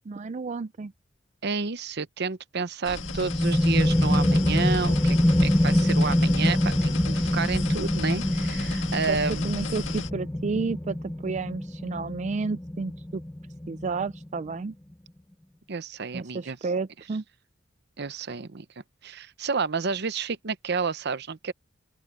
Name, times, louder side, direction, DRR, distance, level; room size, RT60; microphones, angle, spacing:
voice 1, 0.1-0.9 9.1-11.0 11.2-13.2 13.7-14.7 16.1-17.2, right 4 dB, 40° right, 0.4 m, -31 dB
voice 2, 1.4-9.5 15.7-16.6 18.0-18.7 19.0-21.5, right 5 dB, 60° right, 0.8 m, -30 dB
sound 1, 2.8-10.1, left 4 dB, 75° left, 1.8 m, -35 dB
sound 2, 3.0-14.4, left 1 dB, 10° left, 0.6 m, -25 dB
open air
head